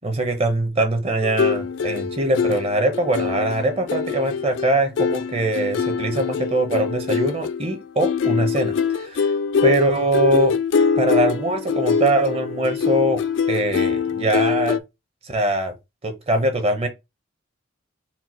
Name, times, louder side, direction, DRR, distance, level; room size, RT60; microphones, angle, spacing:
voice 1, 0.0-9.3 9.6-10.5 11.0-13.2 13.5-14.8 15.2-15.7 16.0-16.9, right 1 dB, 30° right, 0.9 m, -22 dB
sound 1, 1.2-14.8, left 6 dB, 60° left, 0.3 m, -23 dB
4.5 x 2.2 x 4.3 m
head